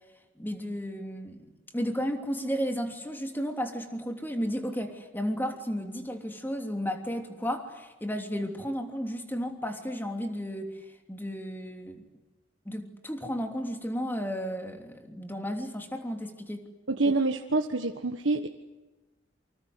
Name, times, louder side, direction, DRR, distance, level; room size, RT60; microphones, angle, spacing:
voice 1, 0.4-1.5 1.7-12.0 12.6-16.6, equal, 10° left, 4 dB, 3.0 m, -33 dB
voice 2, 16.9-18.5, right 3 dB, 90° right, 4 dB, 1.5 m, -26 dB
28.5 x 25.5 x 8.0 m, 1.1 s
head